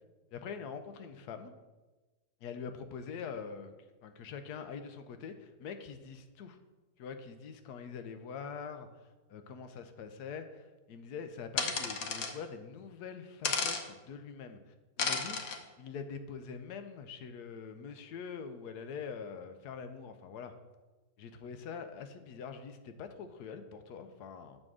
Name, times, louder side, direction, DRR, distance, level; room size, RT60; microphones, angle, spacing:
voice 1, 0.3-1.5 2.4-3.7 4.0-6.6 7.0-8.9 9.3-14.6 15.0-15.4 15.8-20.5 21.2-24.6, left 6 dB, 85° left, 8 dB, 1.2 m, -44 dB
sound 1, 11.6-12.3 13.4-13.8 15.0-15.6, left 5 dB, 65° left, 1.1 m, -32 dB
7.5 x 3.6 x 6.2 m, 1.2 s
omnidirectional pair, 1.7 m